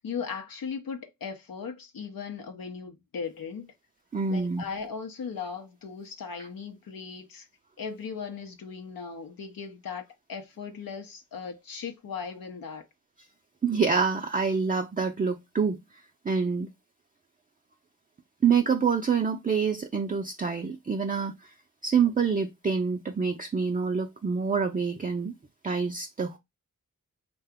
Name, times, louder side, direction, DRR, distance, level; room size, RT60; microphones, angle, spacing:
voice 1, 0.0-3.7 4.3-7.5 7.8-10.0 10.3-12.9, left 6 dB, 80° left, 0.6 m, -38 dB
voice 2, 4.1-4.6 13.6-15.8 16.2-16.7 18.4-21.5 21.8-25.3 25.6-26.4, right 5 dB, 25° right, 0.4 m, -26 dB
2.8 x 2.2 x 3.4 m
cardioid pair, 45°, 34 cm